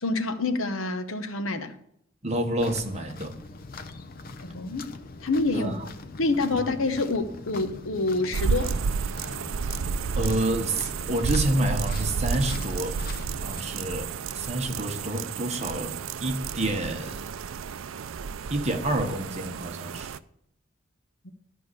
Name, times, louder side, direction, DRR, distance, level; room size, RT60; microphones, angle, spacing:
voice 1, 0.0-1.8 4.4-4.9 5.2-5.7 6.2-8.7 21.2-21.3, left 3 dB, 80° left, 1.0 m, -27 dB
voice 2, 2.2-3.4 5.5-5.9 6.5-6.6 10.1-13.0 13.4-16.0 16.2-17.3 18.5-20.2, right 1 dB, 35° right, 1.2 m, -28 dB
sound 1, 2.6-13.6, left 3 dB, 45° left, 0.7 m, -42 dB
sound 2, 8.3-20.2, right 5 dB, 80° right, 0.5 m, -31 dB
12.5 x 5.1 x 8.2 m
head